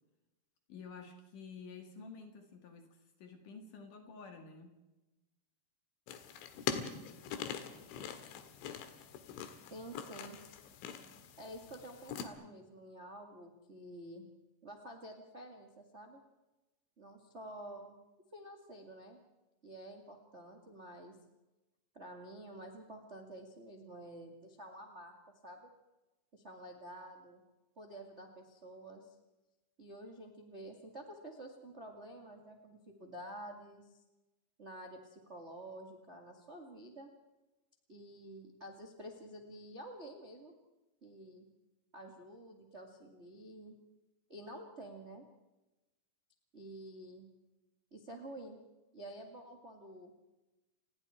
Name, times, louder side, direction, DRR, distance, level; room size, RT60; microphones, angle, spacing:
voice 1, 0.7-4.8, left 5 dB, 55° left, 5 dB, 2.7 m, -51 dB
sound 1, 6.1-12.3, left 8 dB, 80° left, 4.0 m, -43 dB
voice 2, 9.7-10.4 11.4-14.3 14.6-16.2 17.0-17.9 18.3-19.2 19.6-21.1 21.9-25.2 25.4-25.7 26.3-27.4 27.7-29.1 29.8-34.0 34.6-37.1 37.9-40.5 41.0-41.4 41.9-43.7 44.3-45.3 46.5-47.3 47.9-48.6 48.9-50.1, right 1 dB, 65° right, 2 dB, 0.6 m, -50 dB
29.5 x 20.0 x 4.5 m, 1.0 s
omnidirectional pair, 5.5 m